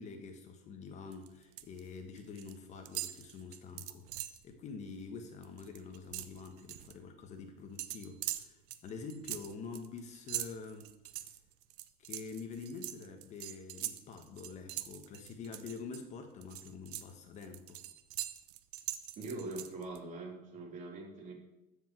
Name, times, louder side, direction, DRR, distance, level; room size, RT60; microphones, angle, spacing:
voice 1, 0.0-10.9 12.0-17.8, left 5 dB, 35° left, 5 dB, 1.3 m, -46 dB
sound 1, 1.1-1.8 2.1-2.6 2.9-4.4 4.9-5.0 5.3-6.9 7.8-16.0 16.4-20.0, right 14 dB, 75° right, 0.9 m, -42 dB
voice 2, 19.2-21.3, right 2 dB, 35° right, 0 dB, 3.1 m, -42 dB
14.0 x 5.3 x 7.6 m, 0.91 s
supercardioid pair, 150°, 21 cm